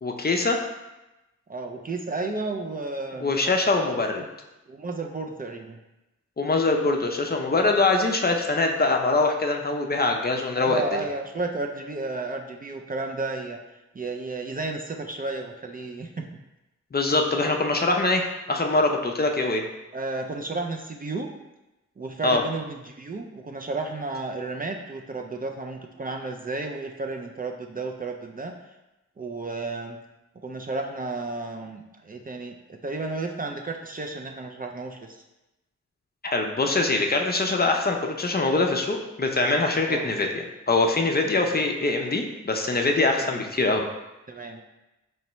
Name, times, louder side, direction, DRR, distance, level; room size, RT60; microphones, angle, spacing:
voice 1, 0.0-0.6 3.2-4.2 6.4-11.0 16.9-19.7 22.2-22.4 36.2-40.3 40.7-43.9, left 3 dB, 35° left, 3 dB, 0.5 m, -23 dB
voice 2, 1.5-3.3 4.2-4.3 4.7-5.8 10.5-13.6 13.9-16.3 19.9-21.3 22.0-28.5 29.2-30.0 30.4-35.2 39.9-40.1 41.3-41.5 43.1-43.5 44.3-44.6, right 3 dB, 30° right, 2 dB, 0.4 m, -32 dB
4.3 x 3.1 x 3.0 m, 0.99 s
cardioid pair, 60°, 29 cm